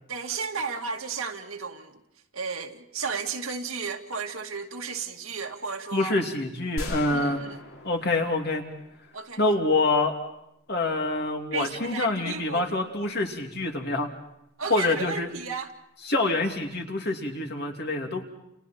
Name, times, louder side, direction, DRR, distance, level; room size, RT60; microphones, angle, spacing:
voice 1, 0.1-2.0 2.3-6.1 7.1-7.6 9.1-9.4 11.5-12.7 14.6-15.7, right 5 dB, 85° right, 2.3 m, -33 dB
voice 2, 5.9-7.4 7.8-8.6 9.4-10.1 10.7-14.1 14.7-15.3 16.0-18.2, left 2 dB, 50° left, 2.7 m, -26 dB
sound 1, 6.8-9.7, left 1 dB, 85° left, 4.1 m, -39 dB
30.0 x 29.5 x 4.4 m
head